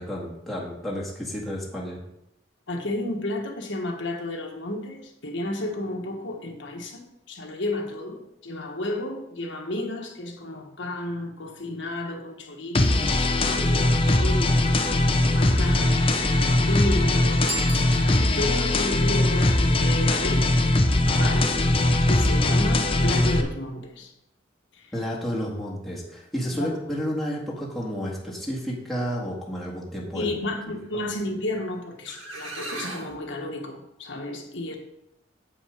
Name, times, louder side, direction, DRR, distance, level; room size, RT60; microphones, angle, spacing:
voice 1, 0.0-2.0 24.9-30.3, equal, ahead, -5 dB, 1.8 m, -31 dB
voice 2, 2.7-16.1 16.4-17.4 17.8-20.5 21.1-24.1 24.7-24.9 26.6-26.7 30.1-34.8, left 1 dB, 65° left, 1 dB, 1.3 m, -32 dB
sound 1, 12.7-23.4, left 2 dB, 30° left, 0.7 m, -21 dB
Bicycle bell, 17.4-18.6, right 3 dB, 30° right, 1.7 m, -36 dB
sound 2, 31.7-31.8 32.1-33.2, right 2 dB, 85° right, 1.9 m, -36 dB
8.3 x 5.6 x 5.1 m, 0.84 s
head